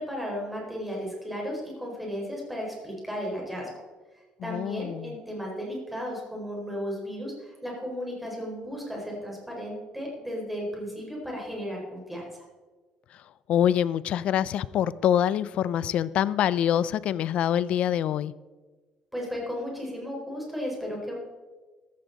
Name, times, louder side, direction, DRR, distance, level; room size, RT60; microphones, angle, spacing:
voice 1, 0.0-3.7 4.4-12.4 19.1-21.1, equal, 5° right, -2 dB, 4.5 m, -34 dB
voice 2, 4.4-5.2 13.5-18.3, left 10 dB, 60° left, 18 dB, 0.5 m, -25 dB
14.5 x 13.0 x 4.0 m, 1.3 s
cardioid pair, 130°, 2 cm